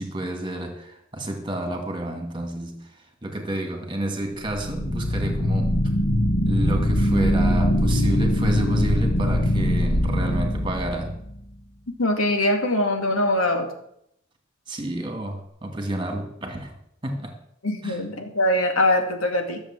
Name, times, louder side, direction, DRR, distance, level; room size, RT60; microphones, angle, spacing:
voice 1, 0.0-5.8 6.5-11.1 14.7-16.7 17.0-17.3 17.8-18.0, right 1 dB, 25° right, 3 dB, 2.2 m, -30 dB
sound 1, 4.4-11.4, equal, 55° left, 1.2 m, -22 dB
voice 2, 12.0-13.7 17.6-19.6, left 1 dB, 90° left, 4 dB, 2.3 m, -22 dB
14.0 x 7.2 x 7.4 m, 0.73 s
head